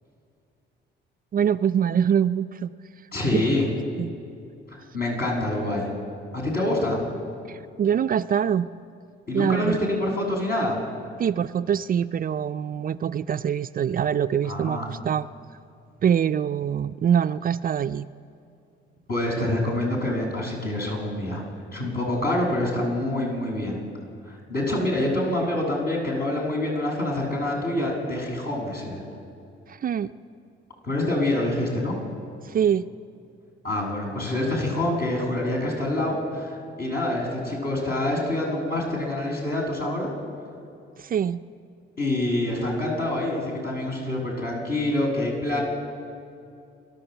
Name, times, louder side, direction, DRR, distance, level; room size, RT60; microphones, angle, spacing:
voice 1, 1.3-2.7 3.3-3.6 4.0-4.1 7.5-8.7 9.3-9.9 11.2-15.3 16.0-18.1 29.7-30.1 32.5-32.9 41.0-41.4, right 8 dB, 45° right, 11 dB, 0.5 m, -24 dB
voice 2, 3.1-3.6 4.7-5.9 6.3-7.0 9.3-10.8 14.4-14.9 19.1-21.4 21.7-23.8 24.3-29.0 30.8-31.9 33.6-40.1 42.0-45.6, left 1 dB, 50° left, -1 dB, 7.3 m, -26 dB
29.5 x 12.0 x 8.0 m, 2.5 s
cardioid pair, 90°, 20 cm